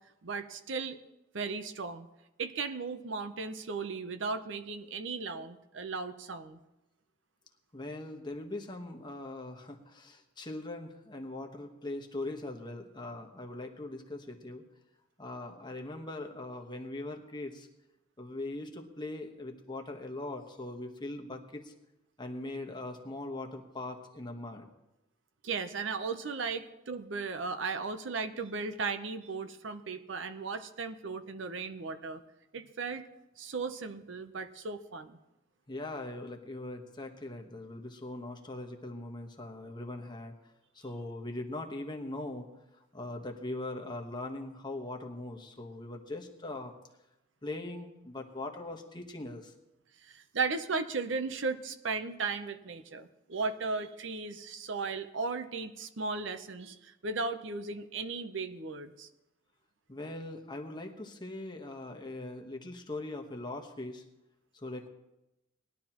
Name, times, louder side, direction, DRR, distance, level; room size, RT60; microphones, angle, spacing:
voice 1, 0.2-1.0 1.3-2.1 2.4-6.6 25.4-32.2 32.5-33.1 33.4-35.2 50.1-59.1, right 4 dB, 70° right, 9 dB, 0.7 m, -36 dB
voice 2, 7.7-14.6 15.2-17.7 18.2-21.7 22.2-24.7 35.7-40.3 40.7-42.5 42.7-46.7 47.4-49.5 59.9-64.0 64.5-64.9, left 2 dB, 25° left, 3 dB, 1.2 m, -41 dB
19.5 x 11.5 x 3.0 m, 0.94 s
head